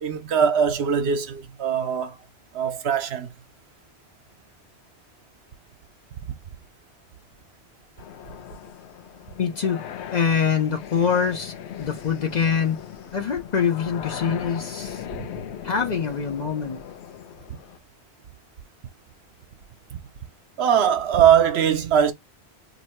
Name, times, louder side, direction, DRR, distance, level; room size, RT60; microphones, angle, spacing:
voice 1, 0.0-2.2 2.5-3.3 15.1-15.3 19.9-20.0 20.6-22.1, right 8 dB, 75° right, 0.9 m, -21 dB
sound 1, 8.0-17.8, left 9 dB, 85° left, 0.9 m, -38 dB
voice 2, 9.4-9.8 10.1-12.8 13.1-15.0 15.6-16.8, left 7 dB, 50° left, 0.6 m, -24 dB
2.8 x 2.6 x 4.3 m
omnidirectional pair, 1.1 m